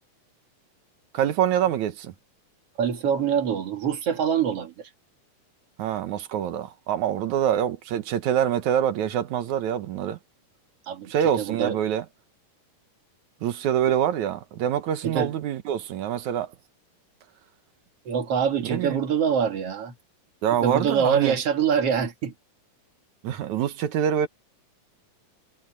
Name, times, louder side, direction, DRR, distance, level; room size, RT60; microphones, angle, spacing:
voice 1, 1.1-2.1 5.8-10.2 11.1-12.1 13.4-16.5 18.6-19.0 20.4-21.4 23.2-24.3, right 9 dB, 65° right, 2.3 m, -25 dB
voice 2, 2.8-4.9 10.9-11.8 15.0-15.3 18.1-19.9 20.6-22.3, right 7 dB, 50° right, 2.7 m, -25 dB
omnidirectional pair, 4.0 m